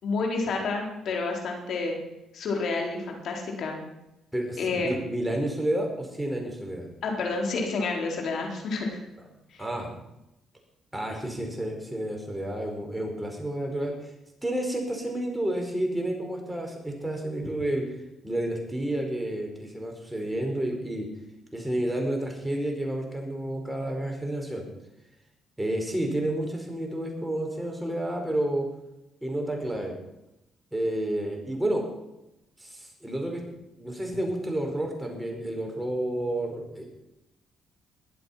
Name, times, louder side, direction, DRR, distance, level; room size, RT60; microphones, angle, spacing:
voice 1, 0.0-2.0 2.3-3.8 4.6-5.0 7.0-9.0 9.5-9.6, left 3 dB, 65° left, 1 dB, 4.3 m, -29 dB
voice 2, 4.3-6.9 9.6-10.0 10.9-14.1 14.4-17.9 18.2-21.1 21.5-24.6 25.6-28.7 29.2-29.9 30.7-31.8 32.6-33.4 33.8-36.9, right 1 dB, 5° right, 1 dB, 4.9 m, -30 dB
21.5 x 8.0 x 5.9 m, 0.89 s
cardioid pair, 90°, 0 cm